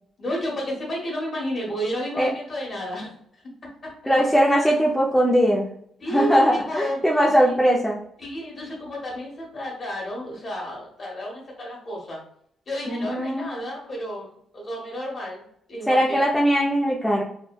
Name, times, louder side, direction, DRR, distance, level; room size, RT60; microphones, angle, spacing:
voice 1, 0.2-3.4 3.8-4.4 6.0-7.6 8.2-12.2 12.7-16.2, equal, 40° left, -2 dB, 1.2 m, -32 dB
voice 2, 4.1-5.7 6.1-8.0 12.9-13.5 15.9-17.2, equal, ahead, -4 dB, 0.4 m, -20 dB
3.1 x 2.1 x 2.3 m, 0.67 s
cardioid pair, 90°, 0 cm